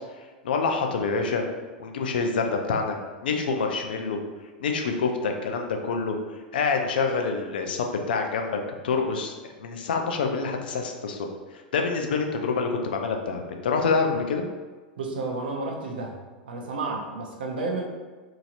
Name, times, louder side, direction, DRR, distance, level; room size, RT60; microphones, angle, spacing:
voice 1, 0.4-1.4 1.8-3.0 3.2-4.2 4.6-6.2 6.5-9.3 9.6-11.3 11.7-14.4, left 4 dB, 75° left, 3 dB, 0.4 m, -26 dB
voice 2, 15.0-16.2 16.4-17.8, right 3 dB, 75° right, 0 dB, 0.6 m, -31 dB
2.9 x 2.7 x 2.5 m, 1.3 s
hypercardioid pair, 95°, 5 cm